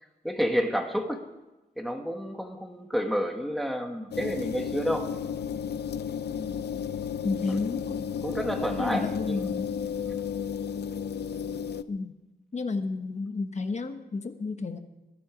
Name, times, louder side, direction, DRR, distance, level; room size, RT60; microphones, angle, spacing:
voice 1, 0.2-1.2 1.8-5.1 7.5-7.6 8.2-9.4 10.0-10.3, equal, ahead, 4 dB, 1.5 m, -30 dB
sound 1, 4.1-11.8, left 7 dB, 75° left, 0.6 m, -33 dB
voice 2, 7.2-8.1 8.8-9.7 11.9-12.1 12.5-14.8, left 3 dB, 40° left, 8 dB, 1.1 m, -31 dB
21.0 x 11.5 x 5.1 m, 1.1 s
wide cardioid pair, 145°, 17 cm